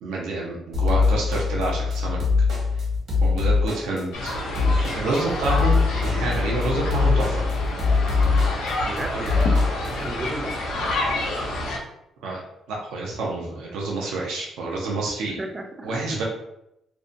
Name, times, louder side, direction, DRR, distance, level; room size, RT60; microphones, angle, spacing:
voice 1, 0.0-2.2 3.2-7.4 9.1-9.2 12.2-12.4 12.7-15.4 15.8-16.2, right 2 dB, 90° right, -3 dB, 0.5 m, -28 dB
sound 1, 0.7-9.9, left 4 dB, 65° right, 1.0 m, -22 dB
sound 2, 4.1-11.8, left 1 dB, 85° left, 0.5 m, -28 dB
voice 2, 8.8-9.6 9.9-10.7 15.4-16.0, right 1 dB, 25° right, 5 dB, 0.4 m, -34 dB
2.5 x 2.1 x 2.5 m, 0.83 s
cardioid pair, 90°, 0 cm